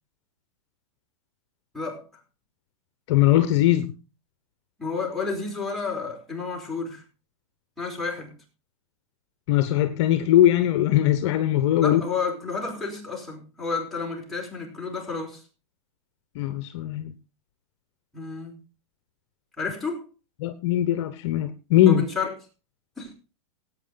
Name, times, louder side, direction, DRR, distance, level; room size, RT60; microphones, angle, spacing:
voice 1, 3.1-3.9 9.5-12.0 16.3-17.1 20.4-22.0, left 12 dB, 50° left, 1.2 m, -20 dB
voice 2, 4.8-7.0 7.8-8.3 11.8-15.4 18.1-18.6 19.6-20.1 21.9-22.3 23.0-23.1, left 4 dB, ahead, 4.8 m, -31 dB
17.0 x 8.9 x 4.0 m
supercardioid pair, 150°, 18 cm